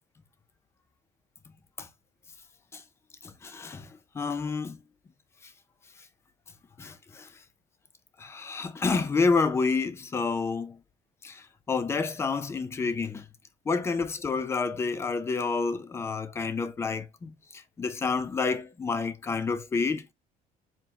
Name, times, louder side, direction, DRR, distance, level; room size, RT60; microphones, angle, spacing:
voice 1, 3.2-4.8 6.8-7.3 8.2-10.8 11.2-13.3 13.7-20.1, left 4 dB, 15° left, 0.5 m, -29 dB
4.8 x 3.7 x 2.9 m
cardioid pair, 170°, 15 cm